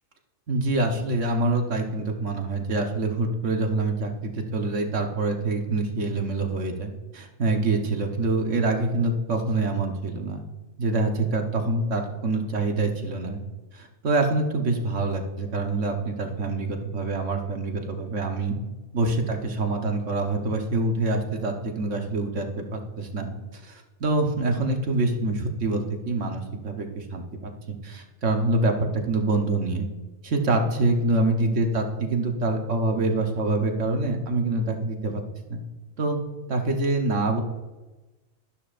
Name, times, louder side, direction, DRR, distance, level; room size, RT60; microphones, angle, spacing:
voice 1, 0.5-10.4 10.8-13.4 13.7-18.5 18.9-29.9 30.2-35.2 35.5-35.6 36.0-36.2 36.5-37.4, right 2 dB, 65° right, 3 dB, 1.5 m, -26 dB
12.5 x 11.5 x 2.5 m, 1.1 s
omnidirectional pair, 1.4 m